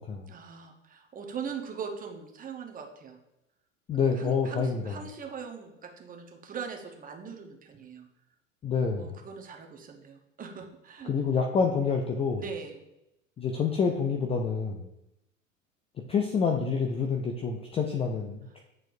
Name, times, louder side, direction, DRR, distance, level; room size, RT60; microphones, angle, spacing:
voice 1, 0.3-3.2 3.9-8.1 9.0-11.1 12.4-12.8, right 6 dB, 20° right, 2 dB, 1.0 m, -41 dB
voice 2, 3.9-4.9 8.6-9.1 11.1-12.4 13.4-14.9 16.1-18.6, left 5 dB, 15° left, 2 dB, 0.4 m, -27 dB
8.6 x 4.4 x 2.6 m, 0.88 s
figure-of-eight pair, 85°, 39 cm